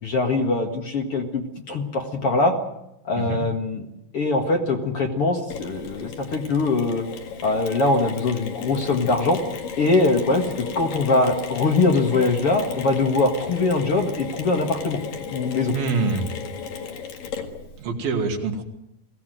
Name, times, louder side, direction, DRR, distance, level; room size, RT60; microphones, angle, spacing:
voice 1, 0.0-2.6 3.0-3.9 4.1-7.0 7.4-9.4 9.8-15.0 15.3-15.7, left 3 dB, 45° left, 3 dB, 2.4 m, -22 dB
Mechanisms, 5.5-17.8, left 6 dB, 65° left, 3.6 m, -35 dB
voice 2, 15.7-16.4 17.8-18.6, right 4 dB, 75° right, 3 dB, 4.2 m, -25 dB
21.5 x 17.0 x 9.3 m, 0.86 s
omnidirectional pair, 4.3 m